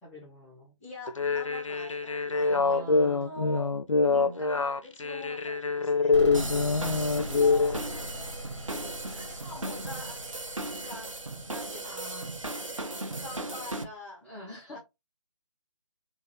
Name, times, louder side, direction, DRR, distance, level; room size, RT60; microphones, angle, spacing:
voice 1, 0.0-0.7 2.5-3.4 4.0-4.4 6.5-7.4 7.9-8.4 11.8-12.4 14.2-14.8, right 1 dB, 5° left, 0.7 m, -45 dB
voice 2, 0.8-3.7 4.1-6.2 7.3-8.4 8.7-10.5 10.8-11.2 11.5-12.2 13.2-14.3 14.7-14.8, left 2 dB, 25° left, 1.8 m, -45 dB
sound 1, 1.1-7.8, left 4 dB, 80° left, 0.5 m, -25 dB
sound 2, 6.1-13.7, equal, 65° left, 0.9 m, -41 dB
sound 3, 6.3-13.8, right 2 dB, 85° right, 0.8 m, -37 dB
3.7 x 2.4 x 3.1 m
figure-of-eight pair, 150°, 16 cm